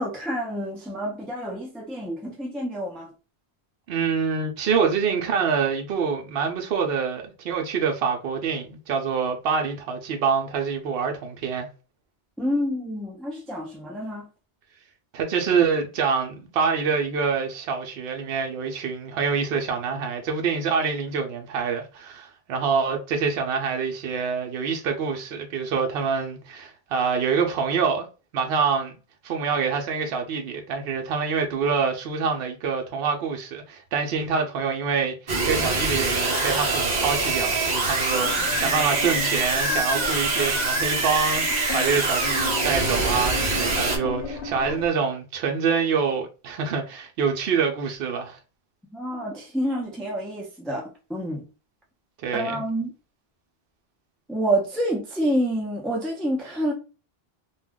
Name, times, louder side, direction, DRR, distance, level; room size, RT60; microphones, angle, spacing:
voice 1, 0.0-3.1 12.4-14.3 48.9-51.4 52.3-52.9 54.3-56.7, equal, ahead, 0.5 m, -28 dB
voice 2, 3.9-11.7 15.1-28.1 28.3-28.9 29.2-48.4 52.2-52.6, right 6 dB, 70° right, 0.8 m, -26 dB
sound 1, 35.3-44.0, right 3 dB, 45° right, 0.8 m, -24 dB
sound 2, 38.1-44.9, left 4 dB, 55° left, 1.0 m, -35 dB
2.4 x 2.2 x 3.5 m
omnidirectional pair, 1.1 m